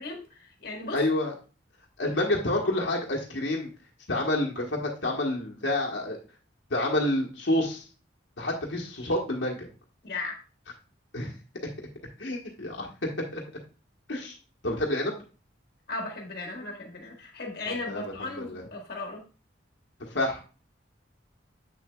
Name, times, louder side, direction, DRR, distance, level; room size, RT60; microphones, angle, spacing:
voice 1, 0.0-1.0 10.0-10.4 15.9-19.2, left 2 dB, 55° left, 1.6 m, -36 dB
voice 2, 0.9-1.3 2.0-3.7 4.1-6.2 6.7-7.8 8.4-9.7 11.1-11.3 12.2-12.9 13.3-13.4 14.1-14.3 14.6-15.1 17.7-18.1 20.1-20.4, left 1 dB, 85° left, 1.3 m, -28 dB
7.5 x 6.6 x 2.3 m
head